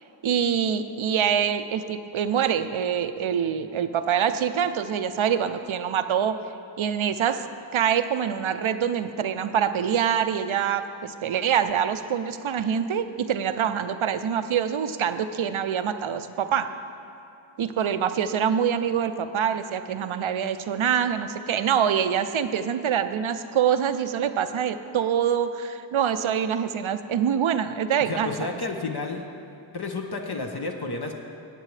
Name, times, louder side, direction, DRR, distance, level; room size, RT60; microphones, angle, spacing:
voice 1, 0.2-6.4 6.8-7.4 7.7-16.7 17.6-28.5, right 8 dB, 80° right, 10 dB, 0.6 m, -25 dB
voice 2, 28.1-29.3 29.7-31.1, left 3 dB, 55° left, 2 dB, 0.8 m, -31 dB
17.0 x 8.2 x 3.2 m, 2.6 s
wide cardioid pair, 45°, 47 cm